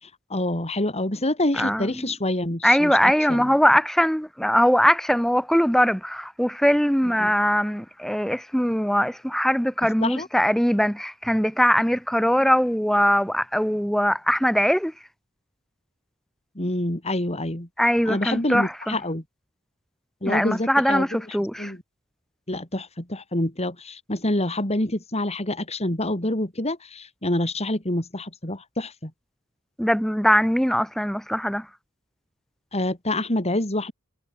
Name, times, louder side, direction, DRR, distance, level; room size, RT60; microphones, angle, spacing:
voice 1, 0.0-3.5 7.2-7.3 10.0-10.3 16.6-17.7 18.1-19.2 20.2-21.8 22.5-29.1 32.7-33.9, left 1 dB, 30° left, 4.3 m, -27 dB
voice 2, 1.6-1.9 2.6-14.9 17.8-19.0 20.3-21.7 29.8-31.6, equal, ahead, 5.6 m, -21 dB
head